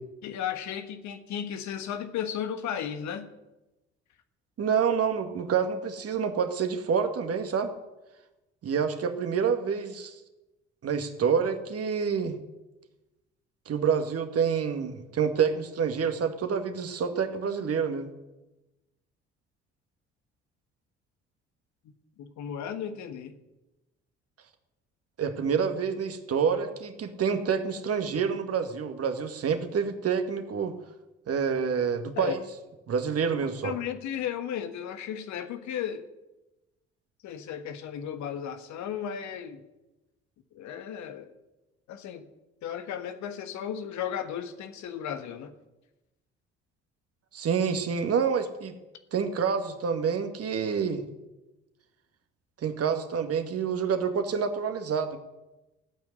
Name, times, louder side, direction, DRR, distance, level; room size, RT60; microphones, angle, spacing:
voice 1, 0.2-3.3 21.8-21.9 22.2-23.4 32.1-32.3 33.6-36.1 37.2-39.6 40.5-41.3 41.9-42.3 42.6-45.5, left 9 dB, 55° left, 9 dB, 1.5 m, -35 dB
voice 2, 4.6-7.7 8.6-10.2 10.8-12.4 13.7-18.1 25.2-30.8 31.3-32.4 32.9-33.7 47.3-48.8 49.1-51.0 52.6-55.2, right 6 dB, 45° right, 7 dB, 2.0 m, -27 dB
15.5 x 9.0 x 9.7 m, 1.0 s
figure-of-eight pair, 50°, 33 cm